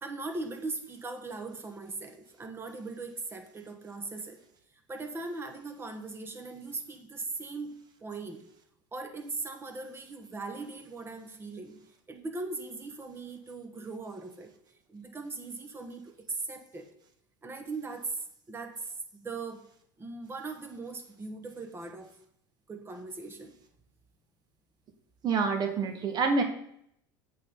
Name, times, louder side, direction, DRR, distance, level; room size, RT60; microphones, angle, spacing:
voice 1, 0.0-4.4 4.9-8.4 8.9-11.8 12.1-14.5 14.9-16.9 17.4-18.2 18.5-19.6 20.0-22.2 22.7-23.5, right 3 dB, 20° right, 6 dB, 1.2 m, -39 dB
voice 2, 25.2-26.4, right 4 dB, 40° right, 5 dB, 1.0 m, -27 dB
8.1 x 3.8 x 5.4 m, 0.71 s
supercardioid pair, 100°, 11 cm